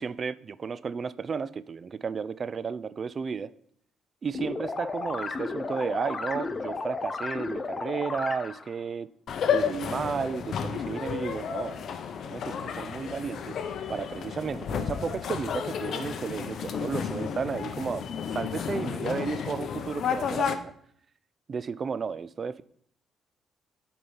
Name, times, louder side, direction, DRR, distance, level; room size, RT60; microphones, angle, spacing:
voice 1, 0.0-3.5 4.2-9.1 9.5-12.0 12.2-13.6 13.9-20.7 21.5-22.6, right 5 dB, 45° right, 17 dB, 0.4 m, -33 dB
sound 1, 4.3-8.7, left 3 dB, 35° left, 0.7 m, -33 dB
sound 2, 9.3-20.5, left 7 dB, 65° left, 0.7 m, -32 dB
8.3 x 4.4 x 5.5 m, 0.65 s
cardioid pair, 90°, 0 cm